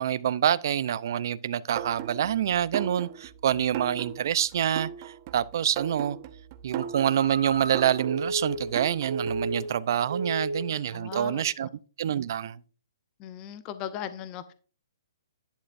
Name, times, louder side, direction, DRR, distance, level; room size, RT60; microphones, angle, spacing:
voice 1, 0.0-6.2 6.6-11.7 12.0-12.6, right 10 dB, 55° right, 0.6 m, -26 dB
sound 1, 1.8-9.6, right 10 dB, 35° right, 0.9 m, -38 dB
Telephone, 6.8-9.8 10.1-10.8 11.1-11.4, right 2 dB, 80° right, 2.8 m, -33 dB
voice 2, 10.9-11.7 13.2-14.5, left 10 dB, 25° left, 0.7 m, -38 dB
11.5 x 10.5 x 2.6 m
hypercardioid pair, 150°, 2 cm